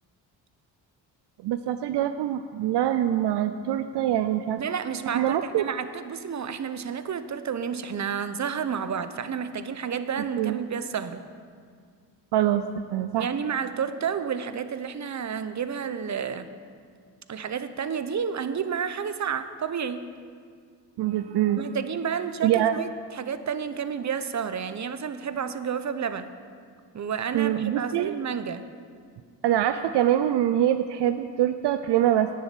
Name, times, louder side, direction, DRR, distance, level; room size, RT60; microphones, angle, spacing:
voice 1, 1.4-4.6 5.1-5.6 10.4-10.6 12.3-12.6 12.9-13.3 21.0-21.6 22.4-22.7 27.3-28.1 29.4-32.3, right 12 dB, 65° right, 10 dB, 0.6 m, -24 dB
voice 2, 4.6-11.2 13.2-16.5 17.3-20.0 21.6-26.3 26.9-28.6, right 7 dB, 40° right, 11 dB, 0.9 m, -30 dB
10.5 x 7.3 x 8.4 m, 2.1 s
supercardioid pair, 60°, 44 cm